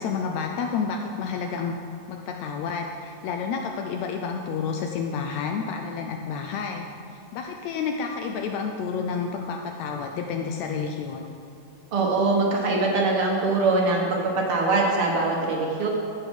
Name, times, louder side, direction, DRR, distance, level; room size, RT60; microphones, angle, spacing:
voice 1, 0.0-1.8 2.1-11.4, left 5 dB, 90° left, 3 dB, 1.5 m, -30 dB
voice 2, 11.9-15.9, right 3 dB, 65° right, -1 dB, 1.4 m, -23 dB
15.0 x 7.1 x 3.6 m, 2.5 s
omnidirectional pair, 3.8 m